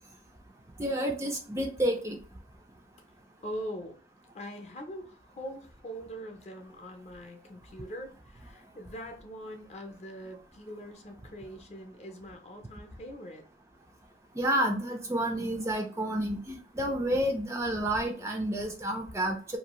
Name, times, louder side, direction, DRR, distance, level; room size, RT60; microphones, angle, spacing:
voice 1, 0.8-2.2 14.4-19.6, right 1 dB, 15° right, 3 dB, 0.3 m, -30 dB
voice 2, 3.4-4.0 4.3-13.4, equal, 40° left, 3 dB, 0.6 m, -42 dB
2.6 x 2.4 x 3.0 m, 0.43 s
head